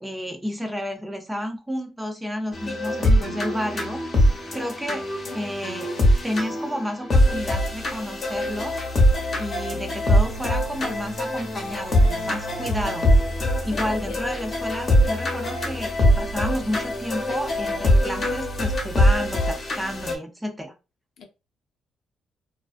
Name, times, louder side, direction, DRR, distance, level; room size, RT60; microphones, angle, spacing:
voice 1, 0.0-4.0 4.5-5.1 5.3-5.9 6.2-8.8 9.4-13.0 13.6-20.7, equal, 10° right, 0.6 m, -31 dB
sound 1, 2.5-20.1, left 1 dB, 40° left, 0.9 m, -23 dB
voice 2, 13.7-14.2 21.2-21.3, left 4 dB, 70° left, 0.6 m, -36 dB
2.4 x 2.2 x 2.5 m
cardioid pair, 90°, 0 cm